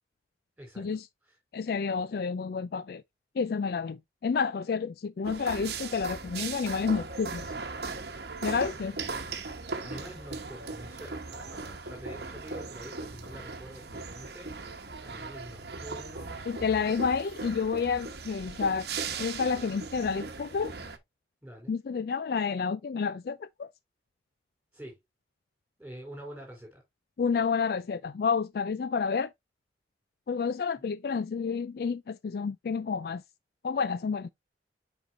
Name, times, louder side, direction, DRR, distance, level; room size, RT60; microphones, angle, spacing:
voice 1, 0.6-0.9 9.8-14.5 15.0-16.5 21.4-21.7 24.7-25.0 25.8-26.8, equal, 5° right, 4.8 m, -46 dB
voice 2, 1.5-3.0 3.4-7.5 8.4-9.0 16.5-18.9 19.2-20.7 21.7-23.7 27.2-29.3 30.3-33.2 33.6-34.3, left 5 dB, 55° left, 0.3 m, -30 dB
sound 1, 5.2-21.0, right 4 dB, 60° right, 1.0 m, -38 dB
7.9 x 5.3 x 2.5 m
head